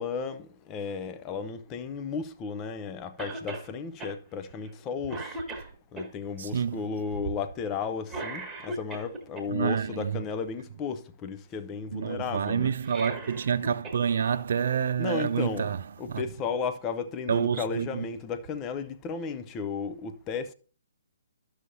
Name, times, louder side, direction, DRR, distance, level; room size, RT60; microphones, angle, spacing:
voice 1, 0.0-5.4 5.9-12.7 15.0-15.7 16.0-20.5, left 5 dB, 20° left, 0.6 m, -34 dB
Cough, 3.2-3.7 4.0-4.2 4.6-4.8 5.1-6.1 8.1-9.4 12.7-14.0 14.3-14.4 15.5-15.6, right 2 dB, 10° right, 1.4 m, -38 dB
voice 2, 6.4-6.8 9.5-10.2 11.9-15.8 16.1-16.2 17.3-18.0, right 7 dB, 50° right, 0.4 m, -28 dB
12.0 x 6.4 x 2.7 m
figure-of-eight pair, 130°, 0 cm